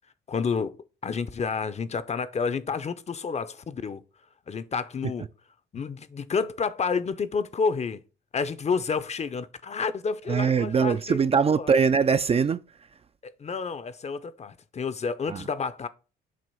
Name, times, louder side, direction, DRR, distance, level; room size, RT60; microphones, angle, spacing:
voice 1, 0.3-0.8 1.0-4.0 4.5-5.2 5.7-8.0 8.3-11.2 13.2-15.9, left 5 dB, 35° left, 0.6 m, -29 dB
voice 2, 10.3-13.0 15.3-15.5, right 6 dB, 30° right, 0.4 m, -23 dB
7.6 x 2.9 x 5.6 m
cardioid pair, 90°, 20 cm